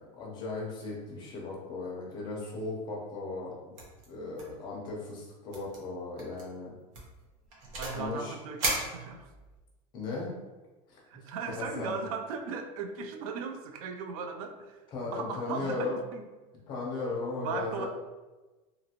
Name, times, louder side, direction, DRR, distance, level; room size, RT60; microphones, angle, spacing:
voice 1, 0.0-3.7 4.1-6.7 7.9-8.4 9.9-10.3 10.9-11.0 11.5-11.9 14.9-16.0 16.7-17.9, left 3 dB, 25° left, -3 dB, 0.6 m, -36 dB
sound 1, 3.8-4.1 4.3-4.6 4.9-5.0 5.5-5.8 6.2-6.4 6.9-8.1 8.6-9.6, right 2 dB, 60° right, 0.8 m, -35 dB
voice 2, 7.8-9.3 11.1-14.9 15.1-16.3 17.4-17.9, right 5 dB, 80° right, 6 dB, 0.4 m, -37 dB
2.6 x 2.5 x 2.8 m, 1.2 s
supercardioid pair, 180°, 18 cm